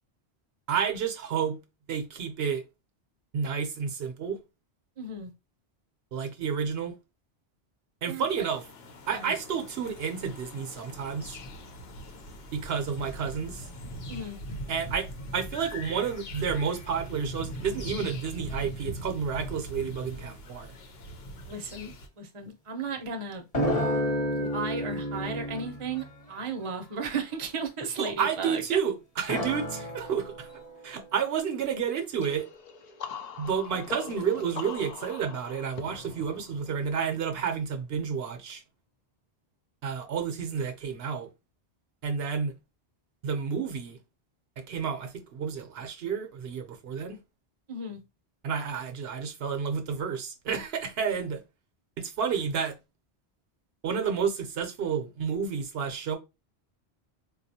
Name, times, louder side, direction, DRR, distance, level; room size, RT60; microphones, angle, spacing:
voice 1, 0.7-1.6 1.9-2.6 3.3-4.4 6.1-6.9 8.0-8.6 9.1-11.4 12.5-13.7 14.7-20.7 28.0-30.5 30.8-32.5 33.4-38.6 39.8-41.3 42.0-42.5 43.2-44.0 44.6-47.2 48.4-51.4 52.0-52.7 53.8-56.2, right 6 dB, 70° right, 0.8 m, -30 dB
voice 2, 5.0-5.3 8.1-8.4 9.1-9.4 14.1-14.4 21.5-23.4 24.3-28.8 47.7-48.0, right 4 dB, 35° right, 0.6 m, -35 dB
sound 1, 8.2-22.1, equal, 70° left, 0.9 m, -41 dB
sound 2, 23.5-26.1 26.3-26.4 26.7-26.8 29.3-31.4, equal, 35° left, 1.1 m, -31 dB
sound 3, 32.2-37.8, left 6 dB, 55° left, 0.5 m, -43 dB
3.8 x 2.3 x 2.7 m
omnidirectional pair, 1.1 m